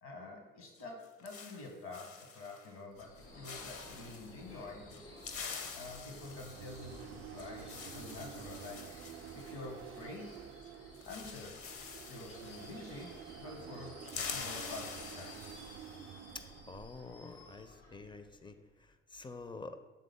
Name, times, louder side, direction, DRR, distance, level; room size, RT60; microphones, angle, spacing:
voice 1, 0.0-5.1 5.7-10.4 10.8-11.6 12.0-15.4, left 2 dB, 70° left, 2 dB, 1.3 m, -48 dB
sound 1, 0.7-2.7 3.0-3.2 3.4-4.3 4.9-10.4 10.6-10.7 10.9-13.3 13.6-16.0, left 5 dB, 50° left, 0.7 m, -47 dB
Subway metro underground / Screech, 2.9-18.8, left 1 dB, 85° left, 1.6 m, -55 dB
sound 2, 5.8-16.9, right 10 dB, 50° right, 0.4 m, -50 dB
voice 2, 16.7-18.5 19.1-19.8, left 3 dB, 15° left, 10 dB, 0.4 m, -47 dB
7.3 x 3.7 x 3.5 m, 1.2 s
hypercardioid pair, 45°, 30 cm